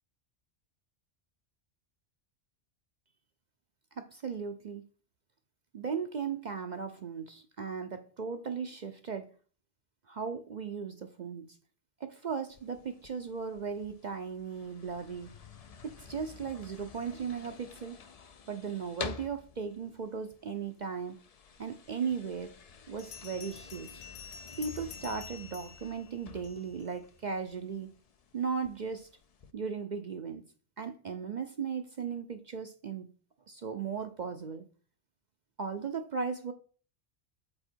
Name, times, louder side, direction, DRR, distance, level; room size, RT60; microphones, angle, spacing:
voice 1, 3.9-4.8 5.7-9.3 10.1-11.6 12.0-15.4 15.8-18.0 18.5-21.2 21.6-22.5 22.9-24.1 24.6-27.9 28.3-29.1 29.5-30.4 30.8-33.1 33.5-34.7 35.6-36.5, right 6 dB, 50° right, 0.6 m, -37 dB
sound 1, 12.5-29.5, left 5 dB, 45° left, 0.5 m, -50 dB
Bell, 23.0-26.9, left 6 dB, 70° left, 1.1 m, -49 dB
7.7 x 4.3 x 4.4 m
omnidirectional pair, 1.2 m